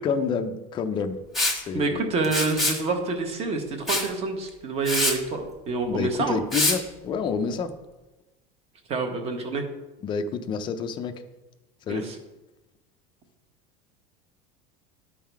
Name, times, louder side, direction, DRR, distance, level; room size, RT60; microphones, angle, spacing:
voice 1, 0.0-1.2 1.5-2.1 5.9-7.7 10.0-11.1 11.9-12.0, left 5 dB, 25° left, 7 dB, 0.5 m, -28 dB
Liquid, 1.3-1.6 2.2-2.8 3.9-4.1 4.5-4.6 4.9-5.2 6.5-6.8, left 1 dB, ahead, 1.2 m, -24 dB
voice 2, 1.7-6.4 8.9-9.7 11.9-12.2, right 3 dB, 30° right, 4 dB, 1.2 m, -27 dB
11.0 x 3.7 x 4.6 m, 1.1 s
cardioid pair, 155°, 20 cm